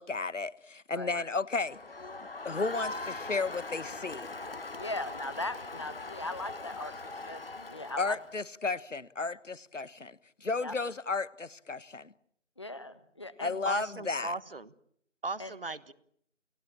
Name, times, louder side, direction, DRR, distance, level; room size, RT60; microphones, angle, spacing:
voice 1, 0.0-1.8 2.4-4.3 8.0-12.1 13.4-14.3, left 3 dB, 80° left, 1.3 m, -33 dB
Crowd, 1.5-8.4, left 2 dB, 50° left, 1.6 m, -41 dB
voice 2, 4.7-6.9 7.2-8.2 10.6-10.7 12.6-13.6 15.4-15.5, left 2 dB, 25° left, 1.3 m, -39 dB
voice 3, 13.6-14.7 15.2-15.9, right 3 dB, 50° right, 1.4 m, -37 dB
29.5 x 17.5 x 8.7 m
figure-of-eight pair, 170°, 37 cm